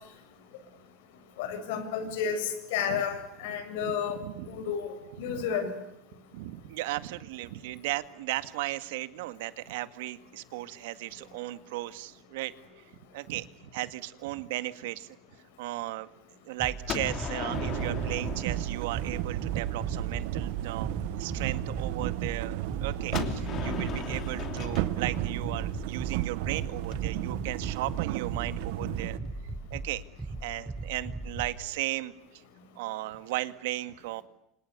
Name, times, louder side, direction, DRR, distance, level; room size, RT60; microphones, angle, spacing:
voice 1, 1.4-4.2 4.5-4.9 5.2-5.7, left 7 dB, 80° left, 9 dB, 7.1 m, -31 dB
voice 2, 4.2-4.6 5.2-5.5 6.3-12.5 13.1-13.5 13.7-15.2 15.6-16.1 16.5-20.9 21.2-29.3 29.7-30.0 30.4-32.4 32.8-34.2, right 17 dB, 85° right, 12 dB, 2.0 m, -36 dB
sound 1, 16.6-31.6, right 2 dB, 5° right, 4.9 m, -38 dB
Gunshot gunfire, 16.9-19.7 23.1-26.9, left 7 dB, 30° left, 2.9 m, -38 dB
sound 2, 17.5-29.2, right 17 dB, 65° right, 1.0 m, -33 dB
29.5 x 27.0 x 6.8 m, 0.82 s
cardioid pair, 170°, 0 cm